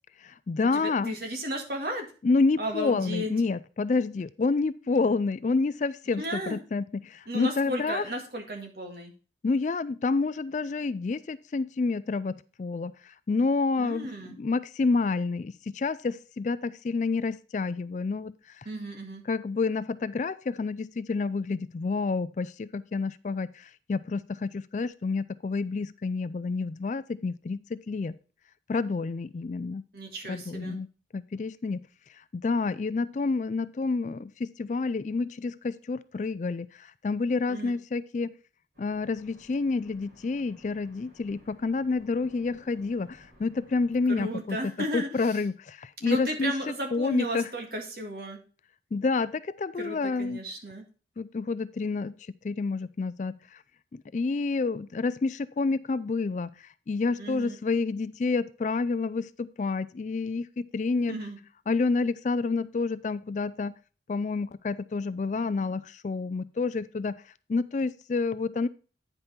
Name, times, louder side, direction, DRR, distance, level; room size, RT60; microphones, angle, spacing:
voice 1, 0.2-1.2 2.2-8.0 9.4-14.1 14.4-18.7 19.3-28.2 28.7-29.8 30.3-30.9 31.1-31.8 32.3-38.3 38.8-44.6 44.9-46.5 46.9-47.5 48.9-50.4 51.2-52.2 52.4-53.6 53.9-61.2 61.7-63.7 64.1-67.2 67.5-68.7, left 4 dB, 40° left, 16 dB, 0.3 m, -29 dB
voice 2, 0.7-2.1 2.6-3.3 6.2-6.6 7.3-9.1 13.8-14.4 18.7-19.2 29.9-30.8 37.5-37.7 44.1-45.4 46.0-48.4 49.8-50.9 57.2-57.6 61.1-61.4, equal, 60° right, 3 dB, 1.9 m, -34 dB
sound 1, 38.7-44.2, equal, 75° right, 4.7 m, -57 dB
9.3 x 5.4 x 4.3 m, 0.36 s
head